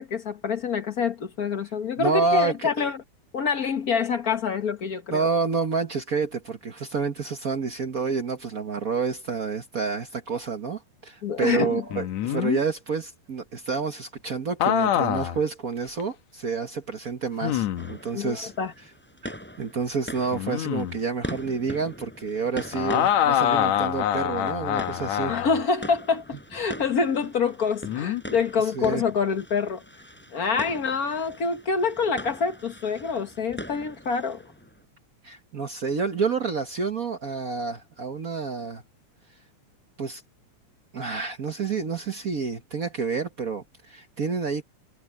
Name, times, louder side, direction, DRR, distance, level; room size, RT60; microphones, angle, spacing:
voice 1, 0.0-3.0 3.3-5.3 11.2-11.8 18.1-18.7 25.3-29.8 30.3-34.4, left 5 dB, 55° left, 1.0 m, -26 dB
voice 2, 2.0-2.9 5.1-18.5 19.2-25.3 28.6-29.0 30.4-30.5 35.2-38.8 40.0-40.2 40.9-44.6, right 5 dB, 60° right, 0.9 m, -29 dB
sound 1, 11.9-12.6 14.6-15.4 16.0-16.1 17.4-18.0 20.3-21.0 22.7-25.6 27.8-28.2, left 10 dB, 70° left, 2.2 m, -25 dB
sound 2, 17.8-34.8, equal, 5° left, 5.0 m, -42 dB
omnidirectional pair, 3.4 m